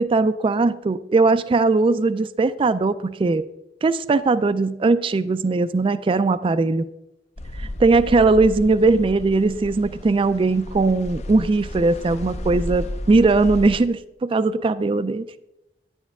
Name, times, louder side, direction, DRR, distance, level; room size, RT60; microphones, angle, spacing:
voice 1, 0.0-3.4 3.8-6.8 7.6-15.3, right 3 dB, 30° right, 13 dB, 0.3 m, -19 dB
sound 1, 7.4-13.9, left 1 dB, 40° left, 0.6 m, -33 dB
10.5 x 9.8 x 3.5 m, 0.89 s
head